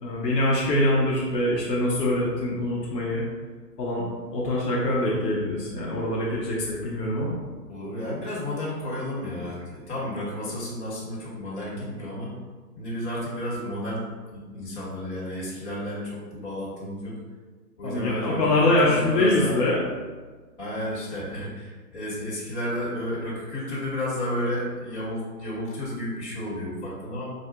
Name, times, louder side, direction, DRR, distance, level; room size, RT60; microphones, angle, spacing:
voice 1, 0.0-3.2 3.8-7.3 17.8-19.8, left 1 dB, 80° left, -5 dB, 1.0 m, -24 dB
voice 2, 7.7-12.3 12.8-14.0 14.3-17.2 17.8-19.5 20.6-27.3, left 1 dB, 45° left, -7 dB, 1.5 m, -32 dB
4.8 x 2.5 x 2.3 m, 1.4 s
hypercardioid pair, 160°, 48 cm